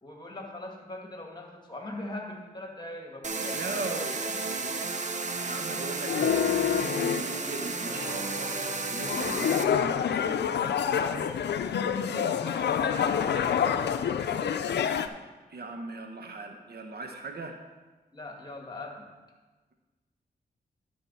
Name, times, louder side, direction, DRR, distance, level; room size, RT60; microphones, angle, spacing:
voice 1, 0.0-4.7 11.7-14.9 18.1-19.1, left 2 dB, 25° left, 1 dB, 2.1 m, -41 dB
sound 1, 3.2-9.6, right 4 dB, 45° right, 0.9 m, -33 dB
voice 2, 3.5-4.2 4.5-5.1 5.4-11.3 15.5-17.6, right 2 dB, 65° right, 4 dB, 1.0 m, -39 dB
sound 2, 6.0-7.2 7.9-15.1, left 8 dB, 75° left, 0.5 m, -28 dB
11.5 x 4.8 x 5.6 m, 1.3 s
cardioid pair, 55°, 18 cm